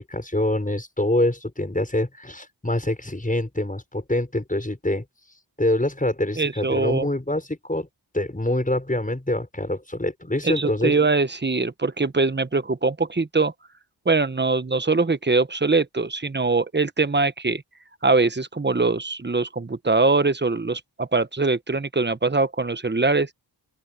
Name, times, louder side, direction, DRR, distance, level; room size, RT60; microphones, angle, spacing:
voice 1, 0.0-5.0 5.6-7.9 8.1-10.9, left 1 dB, 15° left, 6.4 m, -25 dB
voice 2, 6.4-7.1 10.4-13.5 14.0-17.6 18.0-23.3, right 3 dB, 25° right, 1.2 m, -22 dB
open air
cardioid pair, 50°, 45 cm